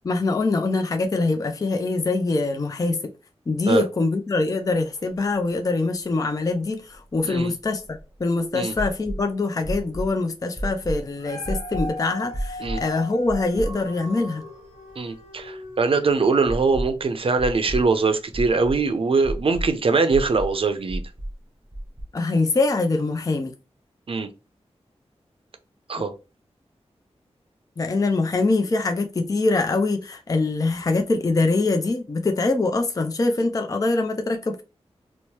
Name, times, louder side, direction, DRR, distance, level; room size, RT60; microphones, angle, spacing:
voice 1, 0.0-3.0 3.5-14.4 22.1-23.5 27.8-34.6, left 3 dB, 30° left, 0.4 m, -23 dB
sound 1, 5.0-5.1 5.3-5.4 6.9-8.2 8.7-9.2 9.6-10.1 10.6-11.0 11.4-11.9 12.3-12.8 13.3-14.0 14.4-14.5 16.5-17.0 17.4-17.9 18.3-18.8 19.2-19.7 20.1-20.5 20.9-21.3 21.7-22.0, right 1 dB, 10° right, 0.7 m, -30 dB
Dog, 11.0-16.3 16.9-17.0, left 1 dB, 70° left, 1.1 m, -38 dB
voice 2, 15.0-21.0 24.1-24.3 25.9-26.1, right 4 dB, 55° right, 0.5 m, -22 dB
2.8 x 2.0 x 3.0 m
cardioid pair, 55°, 11 cm